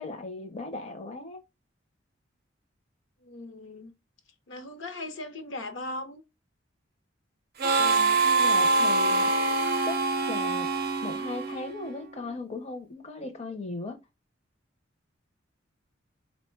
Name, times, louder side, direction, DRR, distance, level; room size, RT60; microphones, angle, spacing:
voice 1, 0.0-1.4 7.8-9.3 9.8-10.7 11.0-14.0, left 2 dB, 35° left, 0.6 m, -37 dB
voice 2, 3.2-3.9 4.5-6.2, left 2 dB, 70° left, 0.7 m, -38 dB
Harmonica, 7.6-12.1, right 3 dB, 55° right, 0.5 m, -25 dB
3.8 x 2.1 x 4.3 m
head